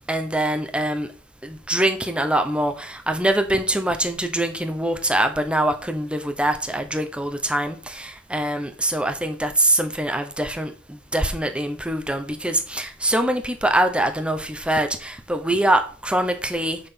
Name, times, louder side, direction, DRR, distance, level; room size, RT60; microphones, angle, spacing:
voice 1, 0.1-1.1 1.4-16.8, right 1 dB, 5° right, 6 dB, 0.9 m, -23 dB
7.8 x 6.8 x 5.7 m, 0.41 s
head